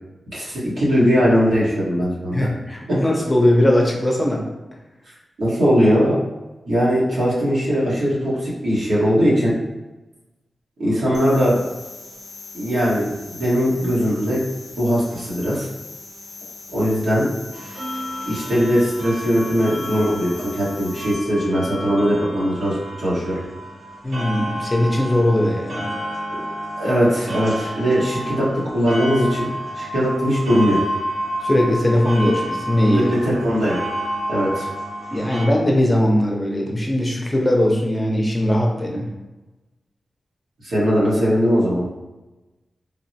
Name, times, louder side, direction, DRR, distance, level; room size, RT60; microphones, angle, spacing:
voice 1, 0.3-2.5 2.9-3.0 5.4-6.2 6.7-9.5 10.8-11.6 12.5-14.4 14.8-15.7 16.7-17.3 18.2-23.4 26.3-26.4 26.8-29.5 29.7-30.8 32.9-33.8 34.3-34.7 40.6-41.8, equal, 90° right, -9 dB, 1.2 m, -20 dB
voice 2, 2.3-4.4 24.0-25.8 31.4-33.1 35.1-39.1, left 1 dB, 20° left, -1 dB, 0.6 m, -19 dB
sound 1, 11.1-21.1, left 4 dB, 65° left, 0.3 m, -40 dB
sound 2, 17.5-35.5, equal, 60° right, 0.6 m, -30 dB
3.7 x 2.0 x 2.7 m, 1.1 s
wide cardioid pair, 85°, 0 cm